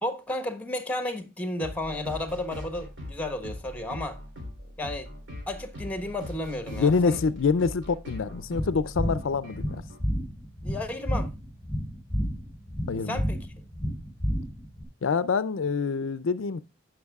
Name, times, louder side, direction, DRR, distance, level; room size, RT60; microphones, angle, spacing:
voice 1, 0.0-4.2 4.8-5.1 5.5-7.2 10.6-11.3 13.1-13.4, left 1 dB, 10° left, 1.1 m, -33 dB
sound 1, 1.6-10.0, left 1 dB, 60° right, 3.3 m, -41 dB
voice 2, 6.7-9.8 12.9-13.2 15.0-16.6, left 5 dB, 70° left, 0.5 m, -26 dB
sound 2, 8.5-14.8, equal, 10° right, 2.6 m, -30 dB
16.0 x 5.9 x 2.3 m
head